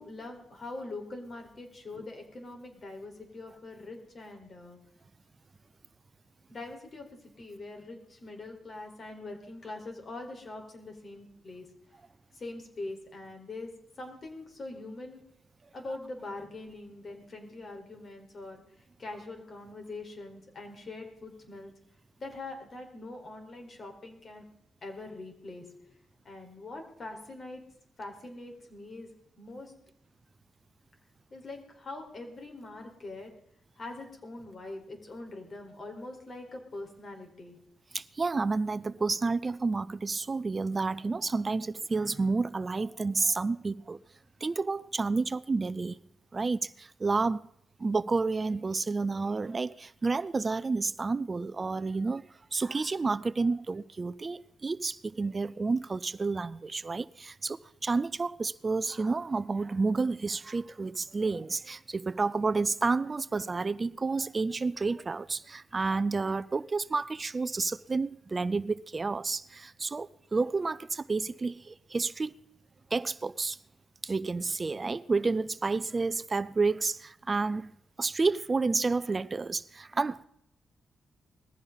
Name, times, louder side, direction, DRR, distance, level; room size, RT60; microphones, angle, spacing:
voice 1, 0.0-4.8 6.5-7.0 7.4-11.7 12.3-13.7 14.0-15.2 15.7-18.6 19.0-21.7 22.2-24.4 24.8-25.7 26.2-27.6 28.0-29.1 29.4-29.7 31.3-33.3 33.8-37.6, left 2 dB, 45° left, 4.6 m, -43 dB
voice 2, 37.9-44.0 44.4-46.0 46.3-47.5 47.8-72.3 72.9-73.6 74.0-80.2, right 3 dB, 30° right, 0.5 m, -30 dB
20.0 x 15.5 x 4.1 m
cardioid pair, 100°, 0 cm